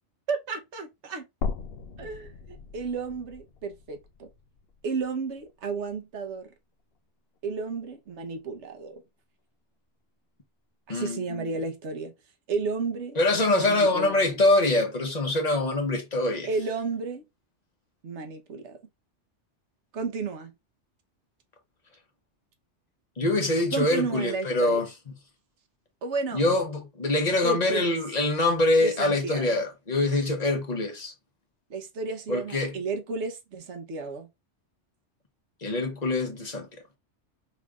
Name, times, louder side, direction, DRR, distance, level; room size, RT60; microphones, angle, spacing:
voice 1, 0.3-1.3 2.0-4.3 4.8-6.5 7.4-9.0 10.9-12.1 12.5-13.2 13.5-14.3 16.5-17.2 18.0-18.8 19.9-20.5 23.7-24.8 26.0-26.4 27.4-27.9 28.8-29.6 31.7-34.3, right 4 dB, 75° right, 1.3 m, -32 dB
sound 1, 1.4-5.6 5.9-6.0 7.4-7.5, left 4 dB, 65° left, 0.8 m, -38 dB
voice 2, 10.9-11.5 13.2-16.5 23.2-24.9 26.3-31.1 32.3-32.8 35.6-36.7, left 2 dB, 35° left, 1.2 m, -24 dB
5.6 x 3.4 x 2.4 m
omnidirectional pair, 1.2 m